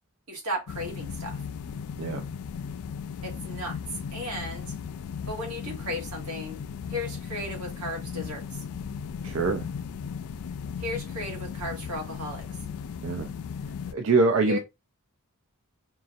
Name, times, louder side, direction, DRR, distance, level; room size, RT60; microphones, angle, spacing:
voice 1, 0.3-1.4 3.2-3.8 4.1-4.8 5.3-6.6 6.9-8.4 10.8-12.5 14.5-14.6, left 1 dB, 90° right, 1.7 m, -35 dB
sound 1, 0.7-13.9, left 6 dB, 80° left, 0.4 m, -36 dB
voice 2, 9.2-9.6 13.0-13.3 13.9-14.6, right 3 dB, 65° right, 0.5 m, -24 dB
5.4 x 2.5 x 2.5 m
head